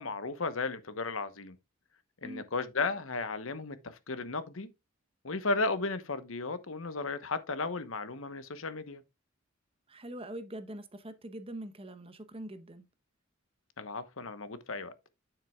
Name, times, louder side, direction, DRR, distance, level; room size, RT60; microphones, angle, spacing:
voice 1, 0.0-1.6 2.2-4.7 5.2-9.0 13.8-14.9, left 3 dB, 80° left, 1.1 m, -34 dB
voice 2, 9.9-12.9, right 1 dB, 30° right, 0.9 m, -43 dB
9.3 x 7.5 x 2.3 m
head